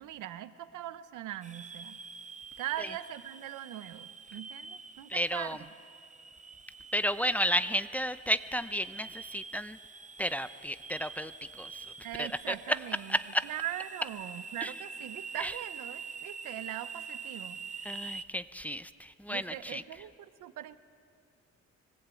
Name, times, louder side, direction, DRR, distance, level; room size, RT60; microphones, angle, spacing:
voice 1, 0.0-2.0 2.6-5.7 12.0-13.2 13.4-17.6 19.3-20.8, right 13 dB, 85° right, 13 dB, 1.0 m, -41 dB
sound 1, 1.4-18.2, right 5 dB, 25° right, 0.9 m, -46 dB
voice 2, 5.1-5.6 6.9-9.8 10.2-11.3 11.6-11.7 12.2-12.8 13.1-13.5 14.6-14.7 15.3-15.5 17.8-19.8, equal, 5° left, 12 dB, 0.7 m, -32 dB
25.0 x 19.5 x 8.5 m, 2.3 s
cardioid pair, 90°, 30 cm